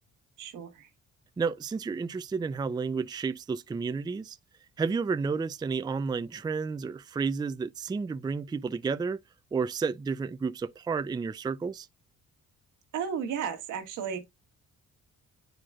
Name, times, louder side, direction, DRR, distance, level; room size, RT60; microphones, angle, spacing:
voice 1, 0.4-0.9 12.9-14.3, right 7 dB, 85° right, 1.6 m, -34 dB
voice 2, 1.4-4.4 4.8-9.2 9.5-11.9, right 5 dB, 15° right, 0.4 m, -31 dB
8.9 x 4.9 x 2.3 m
cardioid pair, 90°, 30 cm